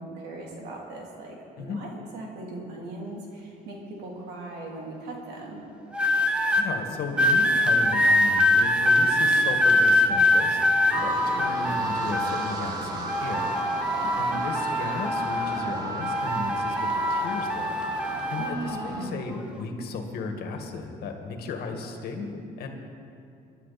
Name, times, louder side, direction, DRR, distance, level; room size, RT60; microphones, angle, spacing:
voice 1, 0.0-5.6 14.0-14.4 18.4-19.2, right 2 dB, 80° right, -2 dB, 3.5 m, -39 dB
sound 1, 5.9-6.6 7.2-12.7 13.1-15.7 16.0-18.5 19.3-19.6, left 1 dB, 5° right, 1.3 m, -23 dB
voice 2, 6.1-13.6 14.1-18.0 18.3-22.7, left 4 dB, 70° left, 4 dB, 2.1 m, -35 dB
sound 2, 10.9-19.0, right 2 dB, 25° right, 3.3 m, -34 dB
23.5 x 12.0 x 4.3 m, 2.5 s
cardioid pair, 110°, 17 cm